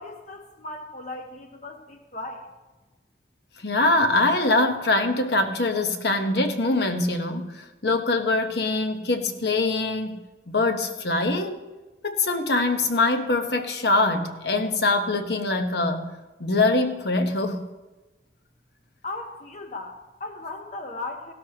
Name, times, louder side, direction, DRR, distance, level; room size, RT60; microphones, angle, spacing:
voice 1, 0.0-2.5 19.0-21.3, left 2 dB, 40° left, 4 dB, 0.8 m, -37 dB
voice 2, 3.6-11.6 12.0-16.1 16.4-17.7, left 2 dB, 65° left, 6 dB, 1.1 m, -23 dB
16.0 x 12.5 x 2.9 m, 1.1 s
head